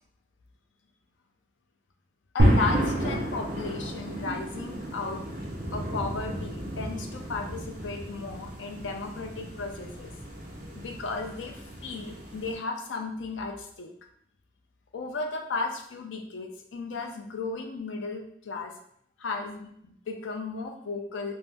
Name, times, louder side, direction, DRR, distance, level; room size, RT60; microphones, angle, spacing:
voice 1, 2.3-5.2 5.7-10.1 10.8-13.9 14.9-18.7 19.2-21.4, left 3 dB, 85° left, 3 dB, 0.5 m, -35 dB
sound 1, 2.4-12.6, equal, 50° right, 0.6 m, -31 dB
2.7 x 2.1 x 3.4 m, 0.68 s
head